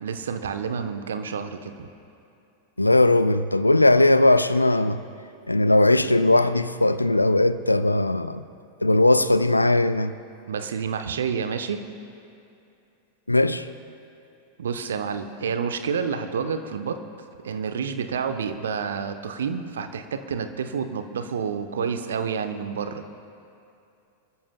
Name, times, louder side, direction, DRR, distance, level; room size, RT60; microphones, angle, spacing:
voice 1, 0.0-1.9 10.5-11.8 14.6-17.0 17.4-23.0, right 6 dB, 65° right, 0.9 m, -29 dB
voice 2, 2.8-5.0 5.5-8.4 8.8-10.1 13.3-13.7, left 2 dB, 85° left, 0.5 m, -19 dB
27.5 x 14.0 x 2.2 m
figure-of-eight pair, 90°, 0 cm